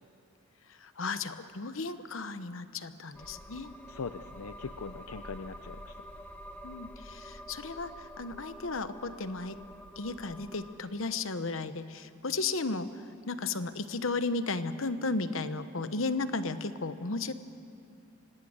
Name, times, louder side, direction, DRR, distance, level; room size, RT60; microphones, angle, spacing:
voice 1, 0.7-3.7 6.6-9.6 10.0-13.0 13.3-17.3, left 3 dB, 70° left, 11 dB, 1.0 m, -34 dB
sound 1, 3.1-10.8, equal, 10° left, 1.2 m, -48 dB
voice 2, 3.9-6.0, left 4 dB, 90° left, 10 dB, 0.6 m, -41 dB
25.0 x 18.5 x 8.8 m, 2.6 s
head